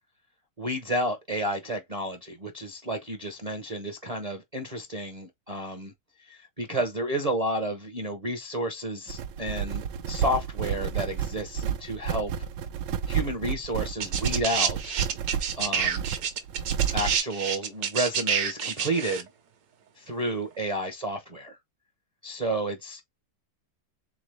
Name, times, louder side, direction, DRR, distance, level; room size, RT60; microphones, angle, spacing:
voice 1, 0.6-5.9 6.2-12.5 13.1-15.0 15.6-16.0 16.9-19.3 20.0-21.6 22.2-23.1, right 1 dB, 40° right, 0.5 m, -31 dB
sound 1, 9.1-17.2, right 8 dB, 85° right, 1.3 m, -31 dB
sound 2, 14.0-19.2 20.2-20.3, right 7 dB, 70° right, 1.3 m, -28 dB
3.8 x 3.8 x 3.3 m
omnidirectional pair, 1.9 m